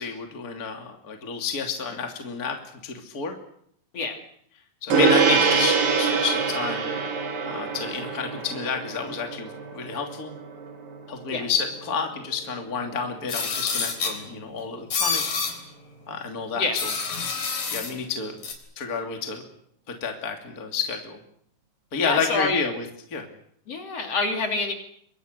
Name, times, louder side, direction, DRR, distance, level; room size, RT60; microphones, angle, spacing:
voice 1, 0.0-3.3 4.8-6.9 7.4-10.3 11.1-15.3 16.1-16.9 17.7-18.4 18.8-19.4 19.9-21.2 21.9-22.8 23.1-23.3, left 5 dB, 30° left, 4 dB, 2.9 m, -30 dB
Gong, 4.9-14.6, right 5 dB, 85° right, 5.2 m, -26 dB
sound 1, 13.3-14.2 14.9-15.5 16.8-17.9 18.4-18.5, left 5 dB, 80° left, 5.5 m, -27 dB
voice 2, 22.0-22.6 23.7-24.7, left 3 dB, 50° left, 4 dB, 3.9 m, -26 dB
27.5 x 24.0 x 6.7 m, 0.68 s
omnidirectional pair, 3.8 m